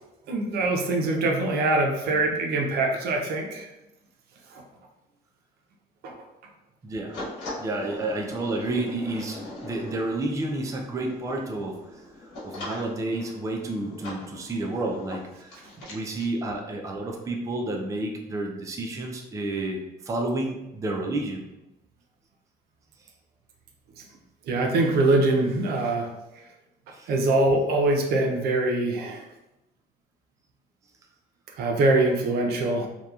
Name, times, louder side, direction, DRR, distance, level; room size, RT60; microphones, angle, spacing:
voice 1, 0.3-3.7 4.5-4.6 6.0-6.1 24.5-26.1 26.4-26.5 27.1-29.3 31.6-32.9, right 2 dB, 70° right, 2 dB, 0.5 m, -23 dB
voice 2, 6.8-7.2 7.6-12.0 12.4-21.5 26.9-27.1, right 2 dB, 20° right, 1 dB, 0.4 m, -30 dB
sound 1, 7.1-16.3, left 1 dB, 75° left, 1.1 m, -41 dB
2.8 x 2.2 x 2.3 m, 0.95 s
cardioid pair, 110°, 17 cm